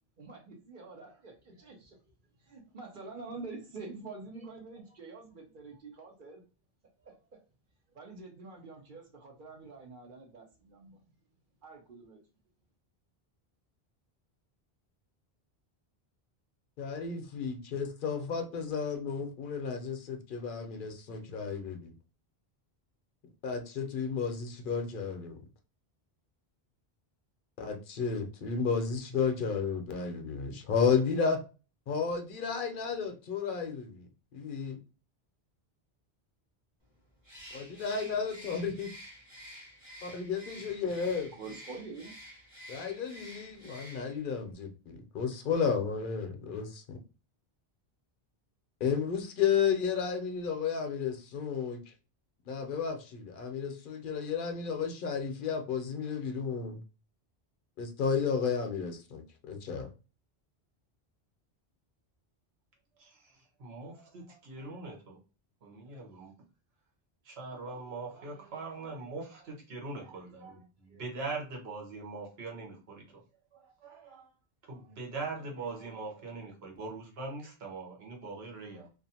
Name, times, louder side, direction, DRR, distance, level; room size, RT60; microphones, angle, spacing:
voice 1, 0.2-2.0 2.4-6.4 7.0-7.4 7.9-11.1 11.6-12.2 41.3-42.1, right 3 dB, 55° right, 0.9 m, -47 dB
voice 2, 16.8-21.9 23.4-25.4 27.6-31.4 31.9-34.1 34.3-34.8 37.5-38.9 40.0-41.3 42.7-47.0 48.8-51.8 52.5-56.8 57.8-59.9, left 6 dB, 60° left, 0.7 m, -32 dB
Bird, 37.2-44.3, equal, 35° right, 1.1 m, -50 dB
voice 3, 63.0-65.2 65.6-66.3 67.2-73.0 73.5-74.3 74.7-78.9, right 3 dB, 75° right, 1.2 m, -42 dB
2.5 x 2.4 x 2.7 m
omnidirectional pair, 1.1 m